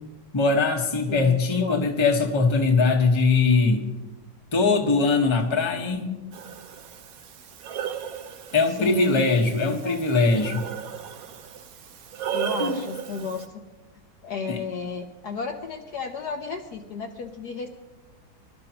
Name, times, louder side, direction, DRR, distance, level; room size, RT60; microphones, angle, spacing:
voice 1, 0.3-3.9 4.5-6.1 8.5-10.6 12.6-12.8 14.5-14.6, left 3 dB, 15° left, 2 dB, 1.1 m, -21 dB
voice 2, 1.1-1.8 8.7-9.3 9.6-10.0 12.3-13.6 14.2-17.7, left 5 dB, 60° left, 3 dB, 1.3 m, -33 dB
Breathing, 6.3-13.5, right 8 dB, 60° right, 1.0 m, -35 dB
24.5 x 12.5 x 3.0 m, 1.1 s
omnidirectional pair, 2.2 m